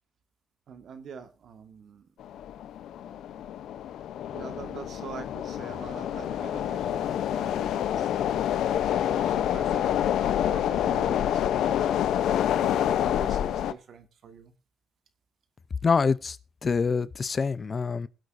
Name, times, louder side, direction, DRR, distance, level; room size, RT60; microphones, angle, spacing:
voice 1, 0.7-2.1 4.3-8.1 8.7-11.8 12.4-14.5, right 6 dB, 60° right, 1.6 m, -45 dB
sound 1, 2.2-13.7, left 10 dB, 75° left, 0.7 m, -27 dB
voice 2, 15.8-16.4 16.6-18.1, left 5 dB, 35° left, 0.6 m, -25 dB
21.5 x 8.0 x 2.6 m
cardioid pair, 90°, 0 cm